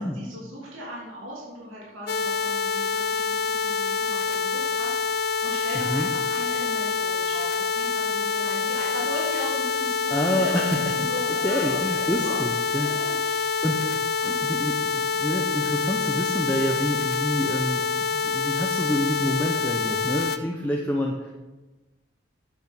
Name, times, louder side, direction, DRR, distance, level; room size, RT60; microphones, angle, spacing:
voice 1, 0.0-13.6 14.2-14.4, equal, 90° right, -5 dB, 3.2 m, -38 dB
sound 1, 2.1-20.4, left 5 dB, 50° left, 0.6 m, -26 dB
voice 2, 10.1-10.9 11.3-12.9 13.6-14.0 14.3-21.3, equal, 10° left, -1 dB, 0.8 m, -28 dB
8.8 x 8.2 x 6.1 m, 1.2 s
head